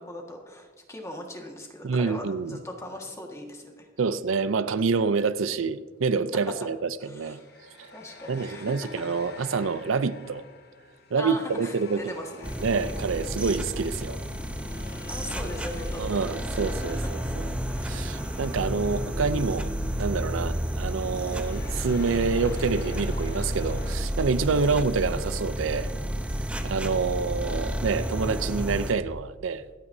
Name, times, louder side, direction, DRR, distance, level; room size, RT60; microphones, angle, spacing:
voice 1, 0.0-3.9 7.0-7.5 7.9-8.8 11.2-12.5 15.1-16.6 20.4-20.5 24.7-24.8, left 1 dB, 15° left, 1.6 m, -39 dB
voice 2, 1.8-2.6 4.0-7.4 7.8-7.9 8.3-10.5 11.1-12.0 12.6-14.2 16.0-17.5 17.8-19.7 20.0-25.9 26.6-29.6, right 4 dB, 75° right, 0.5 m, -27 dB
sound 1, 4.6-4.8 7.3-19.7 19.9-20.1 20.8-24.0, left 3 dB, 55° left, 1.2 m, -46 dB
sound 2, 12.4-28.9, equal, 5° right, 0.7 m, -31 dB
26.0 x 8.9 x 2.7 m
head